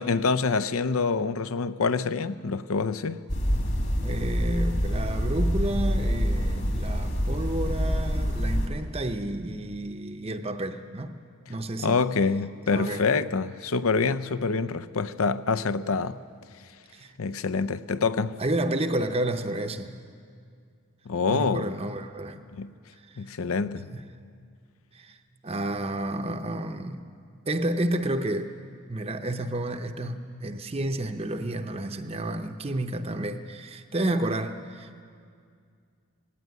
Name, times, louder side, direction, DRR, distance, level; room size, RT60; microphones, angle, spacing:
voice 1, 0.0-3.2 11.8-16.2 17.2-18.4 21.1-21.7 22.5-22.7 23.2-23.9, left 4 dB, 70° left, 0.6 m, -26 dB
sound 1, 3.3-8.7, equal, 50° left, 2.5 m, -26 dB
voice 2, 4.0-11.2 11.5-12.0 12.7-13.1 16.9-17.1 18.4-19.9 21.3-22.4 23.0-23.2 23.9-24.1 24.9-25.2 25.4-27.0 27.5-28.5 28.9-35.0, right 1 dB, 25° right, 0.7 m, -31 dB
18.0 x 17.5 x 9.3 m
head